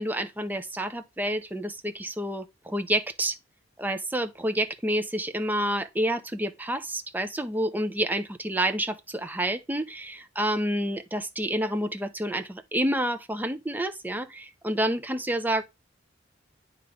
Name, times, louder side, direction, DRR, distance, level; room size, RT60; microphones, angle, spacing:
voice 1, 0.0-3.4 3.8-15.6, right 1 dB, 10° right, 0.7 m, -29 dB
9.4 x 3.1 x 5.1 m
head